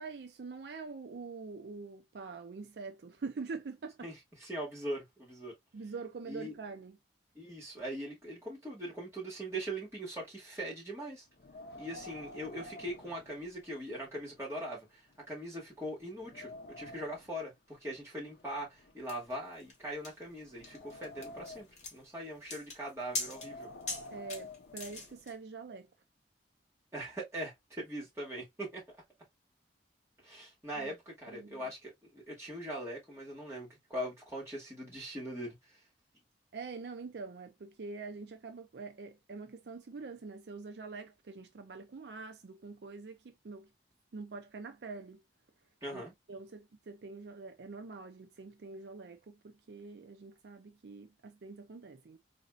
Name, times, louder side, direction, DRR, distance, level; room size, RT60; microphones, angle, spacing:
voice 1, 0.0-4.1 5.7-7.0 24.1-25.9 30.7-30.9 31.3-31.7 36.5-43.7 44.1-45.2 45.9-46.0 46.3-52.2, right 4 dB, 65° right, 0.4 m, -45 dB
voice 2, 4.0-5.6 6.3-6.6 7.3-11.2 11.8-15.0 15.3-23.7 26.9-28.8 30.2-35.6 45.8-46.1, right 1 dB, 15° right, 1.8 m, -41 dB
Wind, 11.3-14.0 14.3-14.4 15.1-15.2 15.7-17.3 18.2-19.7 20.3-21.9 23.1-25.3, left 2 dB, 60° left, 0.6 m, -50 dB
sound 1, 19.1-25.3, left 3 dB, 40° left, 1.4 m, -42 dB
4.1 x 2.7 x 2.4 m
head